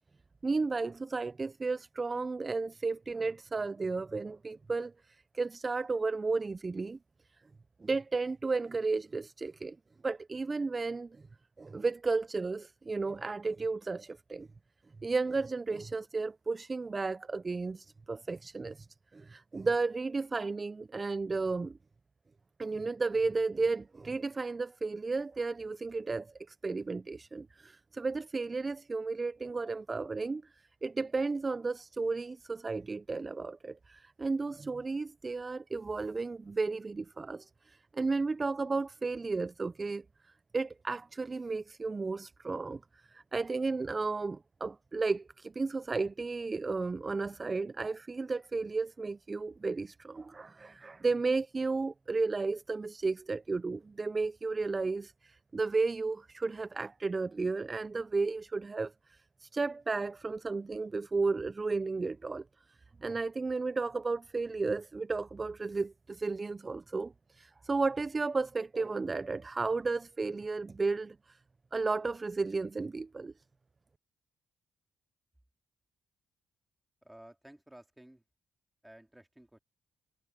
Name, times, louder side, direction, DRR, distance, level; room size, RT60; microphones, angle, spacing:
voice 1, 0.4-7.0 7.8-9.8 10.0-11.2 11.6-14.5 15.0-18.9 19.1-21.8 22.6-30.4 30.8-40.0 40.5-42.8 43.1-62.4 63.0-71.4 71.7-73.3, right 3 dB, 25° right, 0.3 m, -33 dB
voice 2, 77.0-78.2 78.8-79.6, right 1 dB, 5° right, 3.5 m, -54 dB
cardioid pair, 90°, 0 cm